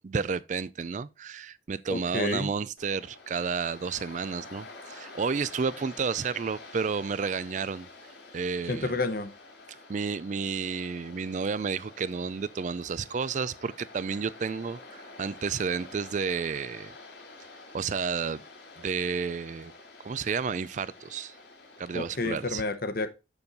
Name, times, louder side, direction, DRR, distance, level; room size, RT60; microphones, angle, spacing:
voice 1, 0.0-7.9 8.3-9.0 9.9-16.9 17.7-18.4 18.8-19.7 20.0-21.3 21.8-22.6, right 5 dB, 40° right, 0.4 m, -31 dB
voice 2, 1.9-2.5 8.7-9.3 21.9-23.1, left 2 dB, 55° left, 0.9 m, -30 dB
Waves surf, 2.8-22.6, left 3 dB, 75° left, 2.2 m, -48 dB
7.1 x 6.9 x 3.9 m
head